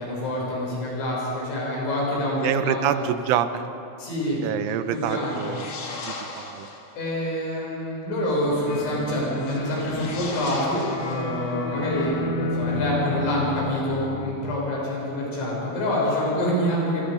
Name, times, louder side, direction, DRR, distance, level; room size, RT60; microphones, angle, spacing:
voice 1, 0.0-2.9 4.0-5.5 7.0-17.1, left 1 dB, 70° left, -4 dB, 8.8 m, -26 dB
voice 2, 2.3-3.7 4.4-5.7 6.0-6.7, right 10 dB, 85° right, 10 dB, 3.2 m, -26 dB
sound 1, 4.9-7.0 9.3-11.7, left 3 dB, 45° left, 2.6 m, -38 dB
sound 2, 8.7-14.3, left 2 dB, 90° left, 4.9 m, -31 dB
26.5 x 24.0 x 5.1 m, 2.8 s
omnidirectional pair, 5.6 m